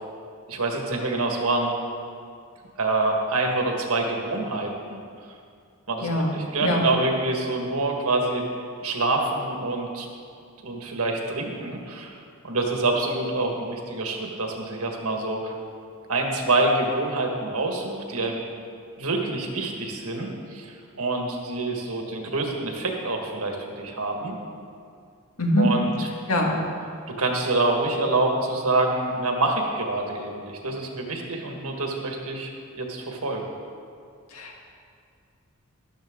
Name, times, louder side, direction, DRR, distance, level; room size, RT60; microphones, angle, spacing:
voice 1, 0.5-1.7 2.8-5.0 5.9-8.4 8.8-10.1 10.6-12.2 12.4-15.5 16.1-18.4 19.0-24.3 25.6-26.1 27.2-32.5 32.8-33.5, right 2 dB, 80° right, 1 dB, 1.7 m, -26 dB
voice 2, 6.0-6.3 6.6-6.8 25.4-25.7 26.3-26.6 34.3-34.6, equal, 80° left, 0 dB, 1.9 m, -23 dB
13.0 x 12.0 x 3.8 m, 2.3 s
head